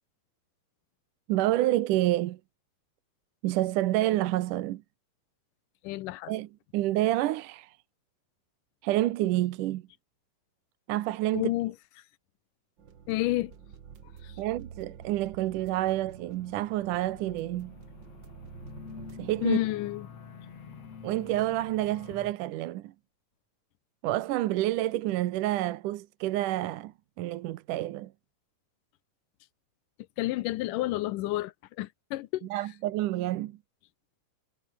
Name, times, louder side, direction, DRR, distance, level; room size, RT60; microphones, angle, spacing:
voice 1, 1.3-2.4 3.4-4.8 6.3-7.8 8.8-9.8 10.9-11.5 14.4-17.7 19.2-19.6 21.0-22.9 24.0-28.1 32.5-33.6, right 15 dB, 75° right, 2.3 m, -28 dB
voice 2, 5.8-6.3 11.3-11.7 13.1-13.5 14.2-14.3 19.4-20.1 30.2-32.5, left 17 dB, 80° left, 2.2 m, -30 dB
sound 1, 12.8-19.5, right 7 dB, 45° right, 1.8 m, -49 dB
sound 2, 15.2-22.3, left 6 dB, 50° left, 3.6 m, -48 dB
omnidirectional pair, 3.9 m